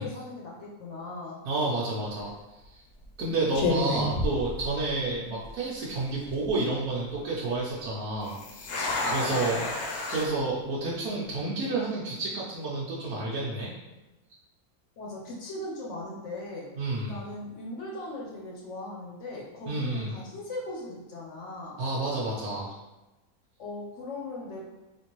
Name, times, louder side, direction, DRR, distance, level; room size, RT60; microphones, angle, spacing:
voice 1, 0.0-1.4 5.2-5.4 9.0-9.8 15.0-16.7 17.1-21.8 23.6-24.6, left 2 dB, 60° left, -3 dB, 0.9 m, -39 dB
voice 2, 1.4-2.8 3.2-9.6 10.1-13.7 16.7-17.2 19.7-20.2 21.8-22.7, right 2 dB, 75° right, -6 dB, 1.1 m, -30 dB
sound 1, 2.0-2.3 3.0-3.2 3.5-5.1 5.4-5.5 6.1-6.5 8.2-10.3, left 2 dB, 80° left, 1.1 m, -31 dB
3.5 x 2.5 x 2.9 m, 1.1 s
omnidirectional pair, 1.6 m